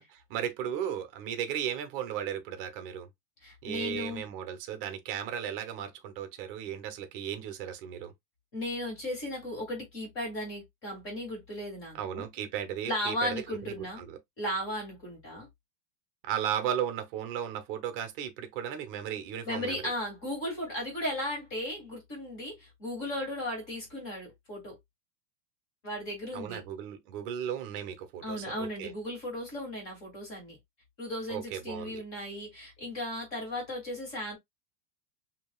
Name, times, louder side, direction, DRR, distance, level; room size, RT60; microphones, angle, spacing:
voice 1, 0.0-3.1 3.6-8.1 11.9-14.2 16.2-19.8 26.3-28.9 31.3-32.0, right 9 dB, 35° right, 0.8 m, -35 dB
voice 2, 3.4-4.2 8.5-12.3 12.9-14.0 14.4-15.5 19.4-24.8 25.8-26.6 28.2-30.6 31.0-34.4, left 1 dB, 25° left, 2.5 m, -36 dB
5.1 x 2.9 x 2.3 m
supercardioid pair, 175°, 50 cm